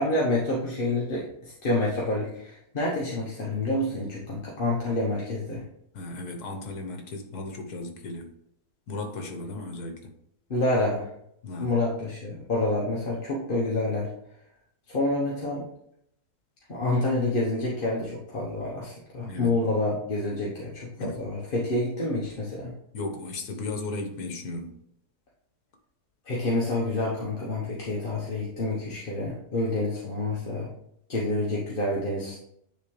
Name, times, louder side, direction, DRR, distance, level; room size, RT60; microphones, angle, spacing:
voice 1, 0.0-5.6 10.5-11.1 11.6-14.1 14.9-15.6 16.7-22.7 26.3-30.7 31.1-32.4, left 2 dB, 40° left, -4 dB, 1.1 m, -28 dB
voice 2, 5.9-8.3 8.9-10.1 11.4-11.7 19.2-19.6 21.0-21.2 22.9-24.8, left 2 dB, 80° left, 5 dB, 1.5 m, -35 dB
9.4 x 3.6 x 3.2 m, 0.74 s
omnidirectional pair, 1.6 m